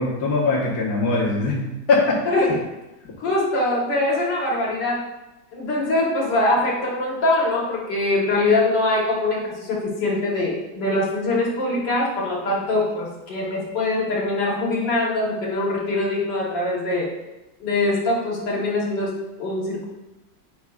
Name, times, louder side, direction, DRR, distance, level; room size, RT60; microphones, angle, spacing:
voice 1, 0.0-2.3, left 3 dB, 60° left, -6 dB, 1.8 m, -21 dB
voice 2, 2.3-2.6 3.2-5.0 5.5-17.1 17.6-19.8, left 2 dB, 80° left, -4 dB, 2.1 m, -23 dB
9.2 x 5.3 x 2.4 m, 0.99 s
omnidirectional pair, 1.9 m